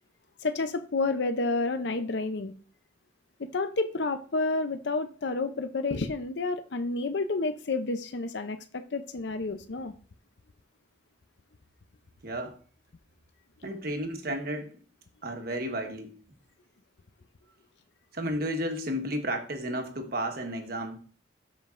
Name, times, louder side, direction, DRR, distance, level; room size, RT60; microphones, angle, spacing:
voice 1, 0.4-2.5 3.4-9.9, left 3 dB, 65° left, 0.6 m, -30 dB
voice 2, 12.2-12.6 13.6-14.8 15.2-16.2 18.1-21.0, equal, 50° right, 1.3 m, -32 dB
13.0 x 5.1 x 2.5 m
head